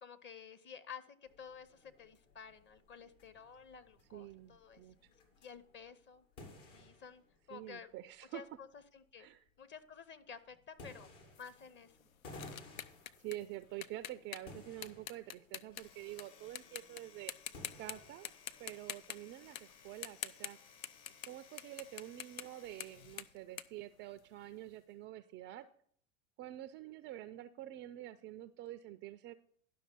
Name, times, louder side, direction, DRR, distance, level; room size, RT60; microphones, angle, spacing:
voice 1, 0.0-4.8 5.4-6.3 6.7-7.9 8.3-9.3 9.6-11.1 11.4-12.1 21.6-21.8, left 7 dB, 25° left, 12 dB, 0.9 m, -52 dB
sound 1, 1.3-20.1, left 2 dB, 65° left, 2.4 m, -58 dB
voice 2, 4.1-5.0 7.5-8.4 9.2-9.4 13.2-17.3 17.8-18.3 18.6-20.6 21.3-25.7 26.4-29.3, right 14 dB, 30° right, 13 dB, 0.4 m, -47 dB
sound 2, 11.3-16.2 16.6-17.0 17.3-17.9 18.2-24.6, left 10 dB, 85° left, 0.6 m, -46 dB
Domestic sounds home sounds, 15.6-23.4, left 7 dB, 50° left, 1.7 m, -61 dB
11.0 x 5.9 x 5.3 m, 0.63 s
hypercardioid pair, 90°, 40 cm